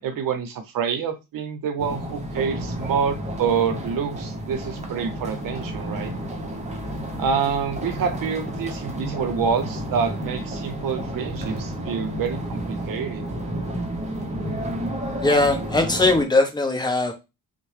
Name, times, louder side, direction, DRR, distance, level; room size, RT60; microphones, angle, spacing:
voice 1, 0.0-6.1 7.2-13.2, right 6 dB, 70° right, 0.7 m, -27 dB
sound 1, 1.8-16.2, right 1 dB, 20° right, 0.7 m, -31 dB
voice 2, 15.2-17.1, left 2 dB, 10° left, 0.7 m, -20 dB
2.8 x 2.1 x 3.2 m
cardioid pair, 100°, 35 cm